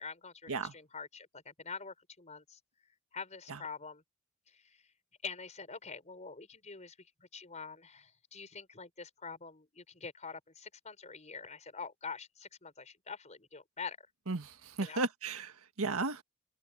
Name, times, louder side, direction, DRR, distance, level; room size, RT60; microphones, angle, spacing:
voice 1, 0.0-2.6 3.1-4.0 5.2-6.9 7.3-14.0 14.8-15.0, left 5 dB, 30° left, 5.1 m, -45 dB
voice 2, 14.3-15.5 15.8-16.2, right 3 dB, 80° right, 1.7 m, -34 dB
head